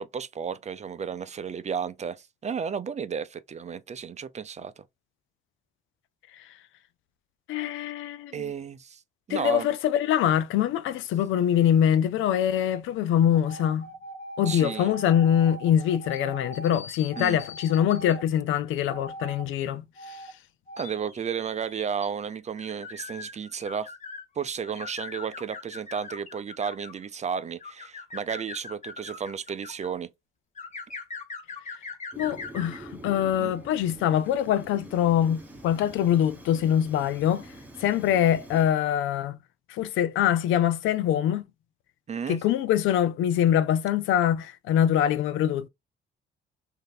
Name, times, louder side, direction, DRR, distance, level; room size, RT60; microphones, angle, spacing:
voice 1, 0.0-4.8 8.3-9.0 9.3-9.7 14.5-14.9 17.2-17.4 20.8-23.9 24.4-30.1 33.4-33.5 42.1-42.4, right 7 dB, 35° right, 0.5 m, -33 dB
voice 2, 7.5-8.5 9.3-13.9 14.4-19.8 20.1-20.2 32.2-37.5 37.8-39.4 39.7-41.4 42.3-45.7, left 10 dB, 90° left, 0.5 m, -24 dB
sound 1, 13.3-18.2 18.9-19.4 20.0-20.3 20.7-24.2 24.6-27.0 27.6-29.9 30.6-32.8, left 2 dB, 35° left, 1.5 m, -41 dB
Fire, 32.1-38.8, right 1 dB, 10° right, 1.1 m, -46 dB
3.2 x 2.7 x 4.0 m
cardioid pair, 90°, 20 cm